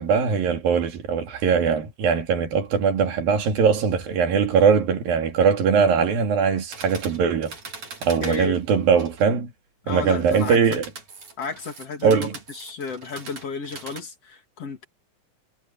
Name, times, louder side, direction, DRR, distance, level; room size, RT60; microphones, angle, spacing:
voice 1, 0.0-7.5 8.0-9.5 9.9-10.8 12.0-12.3, right 6 dB, 85° right, 4.4 m, -21 dB
sound 1, 6.7-9.3 10.2-14.0, right 4 dB, 50° right, 5.5 m, -41 dB
voice 2, 8.2-8.6 9.8-10.6 11.4-14.9, left 5 dB, 45° left, 3.4 m, -32 dB
omnidirectional pair, 4.0 m